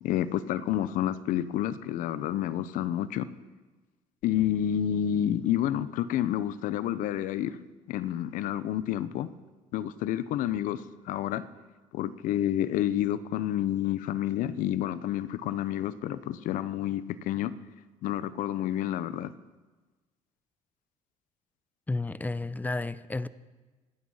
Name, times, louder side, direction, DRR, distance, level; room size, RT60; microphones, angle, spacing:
voice 1, 0.0-3.3 4.2-7.6 7.9-9.3 9.7-11.4 11.9-17.5 18.0-19.3, left 11 dB, 75° left, 15 dB, 0.8 m, -29 dB
voice 2, 21.9-23.3, left 2 dB, 10° left, 17 dB, 0.7 m, -32 dB
25.5 x 9.0 x 5.6 m, 1.2 s
supercardioid pair, 85°, 14 cm